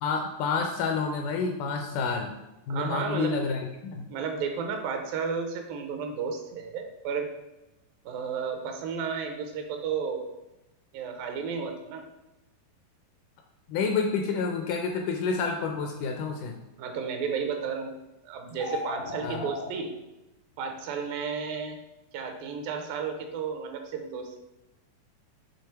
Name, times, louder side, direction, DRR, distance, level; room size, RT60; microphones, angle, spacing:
voice 1, 0.0-2.3 2.7-4.1 13.7-16.6 19.2-19.5, left 5 dB, 80° left, 3 dB, 1.9 m, -29 dB
voice 2, 2.7-3.3 4.1-7.3 8.1-10.3 10.9-12.0 16.8-17.9 18.2-19.9 20.6-21.8 22.1-24.4, right 6 dB, 80° right, 4 dB, 2.5 m, -32 dB
sound 1, 18.5-19.7, left 3 dB, 40° left, 0.4 m, -35 dB
7.0 x 3.2 x 4.5 m, 0.96 s
omnidirectional pair, 4.1 m